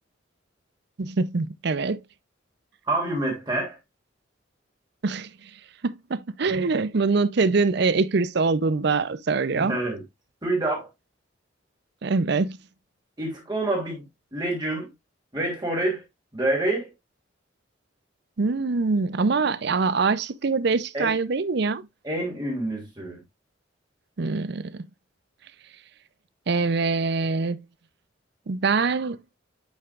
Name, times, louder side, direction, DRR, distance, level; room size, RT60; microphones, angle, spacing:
voice 1, 1.0-2.0 5.0-5.3 5.8-9.8 12.0-12.6 18.4-21.9 24.2-24.8 26.5-27.6 28.5-29.2, right 4 dB, 60° right, 0.5 m, -24 dB
voice 2, 2.9-3.8 6.5-6.7 9.5-10.0 10.4-10.9 13.2-14.0 14.3-14.9 15.3-16.0 16.3-16.9 20.9-21.1 22.0-23.2, right 2 dB, 20° right, 2.9 m, -27 dB
8.9 x 5.7 x 2.4 m
head